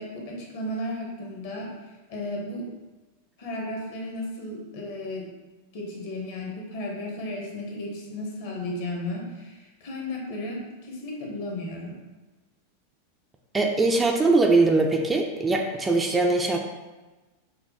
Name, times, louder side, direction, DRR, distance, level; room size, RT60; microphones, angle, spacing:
voice 1, 0.0-1.7 2.1-2.7 3.4-5.3 5.7-11.9, left 1 dB, 50° left, -1 dB, 0.9 m, -34 dB
voice 2, 13.5-16.6, right 3 dB, 15° right, 2 dB, 0.3 m, -21 dB
5.4 x 2.2 x 2.7 m, 1.2 s
figure-of-eight pair, 90°, 0 cm